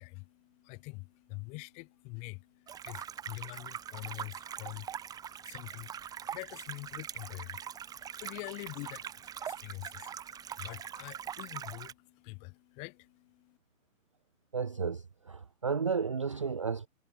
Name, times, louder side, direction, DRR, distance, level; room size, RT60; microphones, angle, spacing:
voice 1, 0.0-13.6, left 30 dB, 15° left, 1.5 m, -46 dB
sound 1, 2.7-11.9, right 9 dB, 10° right, 2.1 m, -43 dB
voice 2, 14.5-16.9, right 5 dB, 25° right, 0.5 m, -33 dB
figure-of-eight pair, 145°, 40 cm